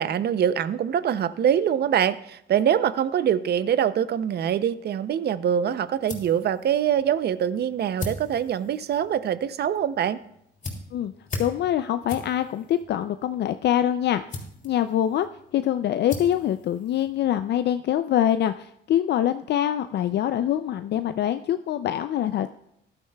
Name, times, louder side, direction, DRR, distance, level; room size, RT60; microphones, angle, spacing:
voice 1, 0.0-10.2, right 9 dB, 55° right, 15 dB, 0.6 m, -24 dB
sound 1, 5.5-17.6, left 2 dB, 40° left, 3.1 m, -41 dB
voice 2, 11.4-14.2 14.6-15.3 15.5-22.5, left 11 dB, 60° left, 10 dB, 0.4 m, -24 dB
14.0 x 11.5 x 2.3 m, 0.76 s
cardioid pair, 90°, 20 cm